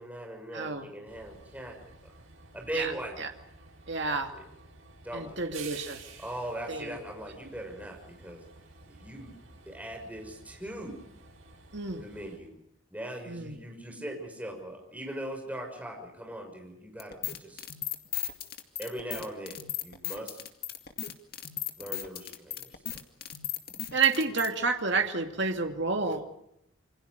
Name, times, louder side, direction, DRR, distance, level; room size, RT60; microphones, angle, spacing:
voice 1, 0.0-1.8 2.5-3.2 4.3-4.4 5.0-5.4 6.2-8.4 8.9-9.4 9.7-11.0 12.0-12.5 12.9-17.6 18.8-20.4 21.8-22.8, right 1 dB, 5° right, 2 dB, 6.4 m, -40 dB
voice 2, 0.5-0.9 2.7-2.9 3.2-3.3 3.9-4.3 5.1-6.0 6.7-7.0 11.7-12.0 13.3-13.6 23.9-26.4, right 4 dB, 55° right, 4 dB, 2.5 m, -29 dB
Train, 1.1-12.4, right 4 dB, 80° right, 6.6 m, -51 dB
sound 1, 17.0-24.5, left 11 dB, 50° left, 2.2 m, -36 dB
28.0 x 25.0 x 5.3 m, 0.76 s
head